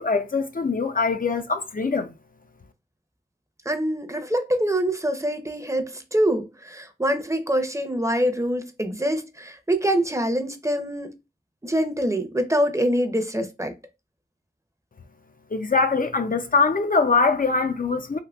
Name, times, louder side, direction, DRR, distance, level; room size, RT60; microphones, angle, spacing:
voice 1, 0.0-2.1 15.5-18.2, left 4 dB, 55° left, 0.4 m, -23 dB
voice 2, 3.7-11.1 11.6-13.7, equal, 15° right, 0.6 m, -25 dB
3.6 x 2.7 x 2.2 m
wide cardioid pair, 55°, 17 cm